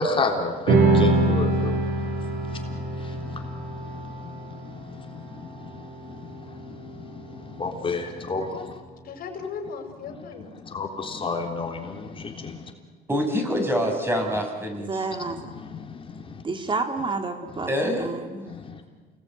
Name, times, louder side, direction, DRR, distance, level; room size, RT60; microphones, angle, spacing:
voice 1, 0.0-8.8 10.1-10.3 10.5-12.7 15.3-16.4 18.5-18.8, left 3 dB, 30° left, 3 dB, 3.5 m, -32 dB
sound 1, 0.7-7.4, right 2 dB, 70° right, 6.7 m, -25 dB
voice 2, 9.0-12.1, left 5 dB, 60° left, 4 dB, 5.4 m, -39 dB
voice 3, 13.1-15.0 17.7-18.2, equal, 15° right, 3 dB, 5.9 m, -25 dB
voice 4, 14.7-15.4 16.4-17.7 18.0-18.5, right 3 dB, 30° right, 6 dB, 2.3 m, -29 dB
29.0 x 20.5 x 9.2 m, 1.4 s
cardioid pair, 110°, 17 cm